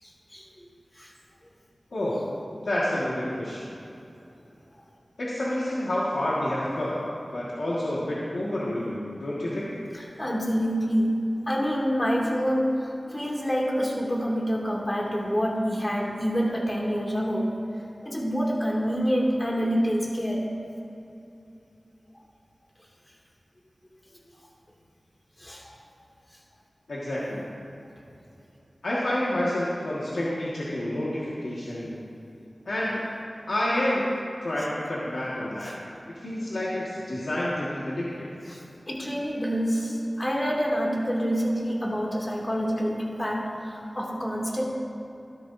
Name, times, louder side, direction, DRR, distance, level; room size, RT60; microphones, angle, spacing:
voice 1, 0.0-0.7 1.0-1.1 9.9-11.2 11.5-17.4 18.0-20.5 25.4-25.7 35.6-35.7 38.5-38.6 38.9-44.6, equal, 25° left, -3 dB, 2.5 m, -27 dB
voice 2, 2.6-3.7 5.2-7.0 7.3-9.7 26.9-27.4 28.8-32.0 32.7-33.1 33.5-34.0 34.4-35.7 36.1-38.3, left 1 dB, 90° left, -8 dB, 1.8 m, -29 dB
14.5 x 12.5 x 2.7 m, 2.8 s
wide cardioid pair, 55°, 0 cm